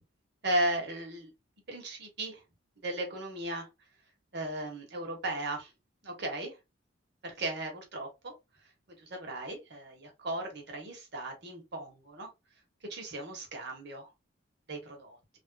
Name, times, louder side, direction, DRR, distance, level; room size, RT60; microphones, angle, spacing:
voice 1, 0.4-1.3 1.7-2.4 2.8-3.7 4.3-5.7 6.0-6.5 7.2-8.3 9.0-12.3 12.9-14.1 14.7-15.2, right 1 dB, 55° right, 1.2 m, -36 dB
3.4 x 2.6 x 2.2 m
head